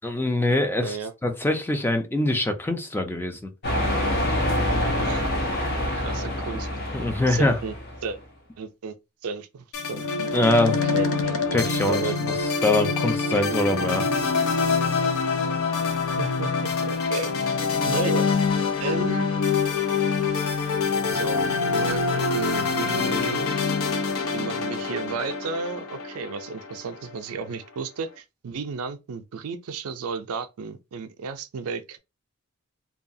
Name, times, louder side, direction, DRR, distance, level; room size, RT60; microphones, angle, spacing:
voice 1, 0.0-1.0 1.2-3.5 6.9-7.6 10.3-10.7 11.5-12.0 12.6-14.1, left 1 dB, 10° left, 0.4 m, -23 dB
voice 2, 0.8-1.1 5.0-5.3 5.9-6.7 7.3-7.7 8.0-8.2 8.6-8.9 9.2-10.0 10.7-11.4 11.9-12.1 16.2-17.3 17.8-18.3 18.8-19.3 21.1-23.4 24.3-32.0, right 4 dB, 90° right, 0.4 m, -33 dB
sound 1, 3.6-8.2, left 1 dB, 50° left, 0.8 m, -26 dB
sound 2, 9.7-27.1, left 4 dB, 70° left, 0.5 m, -25 dB
2.7 x 2.3 x 2.6 m
head